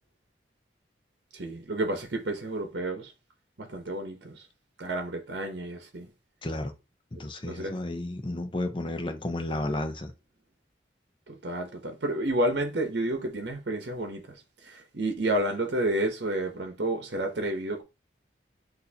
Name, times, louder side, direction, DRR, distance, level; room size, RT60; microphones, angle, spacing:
voice 1, 1.3-3.1 3.6-4.5 4.8-6.1 7.4-7.8 11.3-17.8, right 1 dB, 70° right, 0.9 m, -30 dB
voice 2, 6.4-6.7 7.1-10.1, left 1 dB, 25° left, 0.6 m, -32 dB
6.4 x 2.7 x 2.8 m
head